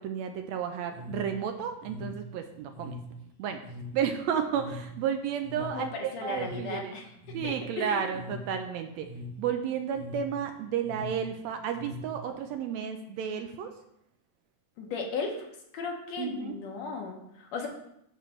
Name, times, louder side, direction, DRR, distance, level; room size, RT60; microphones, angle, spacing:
voice 1, 0.0-3.0 3.4-3.6 3.9-6.9 7.3-9.1 9.4-13.7 16.2-16.5, right 8 dB, 80° right, 6 dB, 1.7 m, -32 dB
sound 1, 0.9-12.5, left 1 dB, 55° left, 1.7 m, -43 dB
voice 2, 5.6-7.1 7.4-8.2 14.8-15.5 15.7-17.7, left 4 dB, 70° left, 2 dB, 2.1 m, -36 dB
9.1 x 3.2 x 6.2 m, 0.78 s
omnidirectional pair, 3.4 m